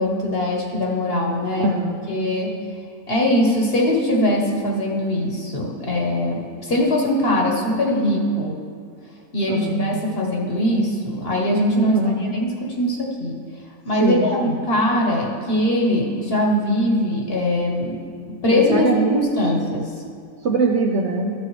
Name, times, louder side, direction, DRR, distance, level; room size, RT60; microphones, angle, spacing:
voice 1, 0.0-1.7 2.1-2.6 3.1-8.6 9.3-12.0 12.3-13.4 13.8-18.0 18.4-19.9, left 1 dB, 45° left, -1 dB, 1.2 m, -21 dB
voice 2, 1.6-2.0 9.5-9.9 11.9-12.2 14.0-14.6 18.5-19.3 20.4-21.3, right 3 dB, 60° right, 2 dB, 0.8 m, -22 dB
13.5 x 7.5 x 3.2 m, 2.3 s
omnidirectional pair, 1.6 m